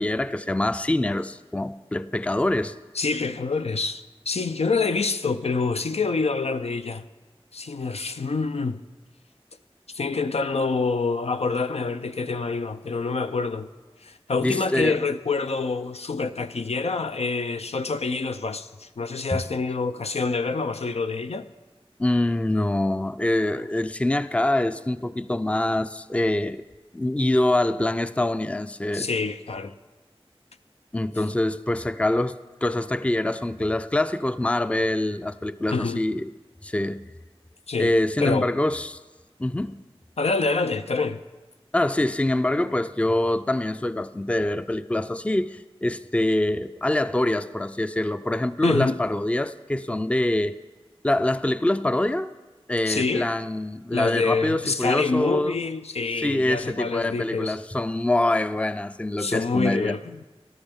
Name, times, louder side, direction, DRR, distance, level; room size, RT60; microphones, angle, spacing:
voice 1, 0.0-2.7 14.4-15.0 19.3-19.4 22.0-26.6 26.9-29.1 30.9-36.3 36.6-37.0 37.8-39.0 39.4-39.8 41.7-50.6 51.0-52.3 52.7-55.6 56.2-60.0, left 1 dB, 10° left, 0.4 m, -25 dB
voice 2, 2.9-7.0 7.5-8.8 9.9-13.7 14.0-21.5 28.9-29.7 35.7-36.0 37.7-37.9 38.2-38.5 40.2-41.2 48.6-49.0 52.9-53.3 53.9-57.6 59.2-60.2, left 4 dB, 85° left, 0.5 m, -26 dB
18.5 x 13.0 x 3.6 m
wide cardioid pair, 50°, 10 cm